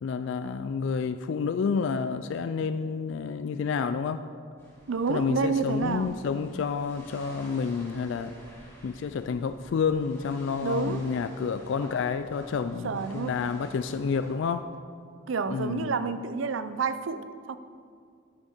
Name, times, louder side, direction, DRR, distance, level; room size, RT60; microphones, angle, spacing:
voice 1, 0.0-4.2 5.1-8.3 8.8-14.7 15.5-15.9, left 5 dB, 60° left, 10 dB, 0.3 m, -29 dB
sound 1, 4.6-14.3, equal, 10° left, 2.5 m, -50 dB
voice 2, 4.9-6.1 10.6-11.0 12.8-13.4 15.3-17.6, right 4 dB, 70° right, 12 dB, 0.5 m, -29 dB
12.5 x 6.3 x 4.4 m, 2.2 s
head